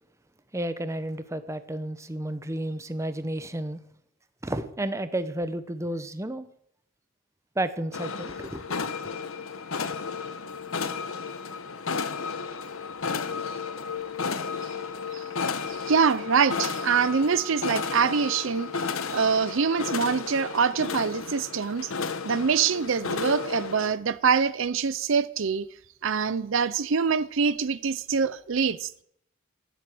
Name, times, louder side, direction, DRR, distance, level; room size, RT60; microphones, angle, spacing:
voice 1, 0.5-3.8 4.4-6.5 7.6-8.9 9.8-9.9, right 1 dB, 15° right, 0.8 m, -32 dB
sound 1, 7.9-23.9, left 5 dB, 75° left, 1.0 m, -33 dB
voice 2, 15.7-18.7 19.1-21.9 22.2-25.7 26.0-29.0, right 6 dB, 60° right, 0.5 m, -25 dB
19.0 x 7.9 x 7.6 m
head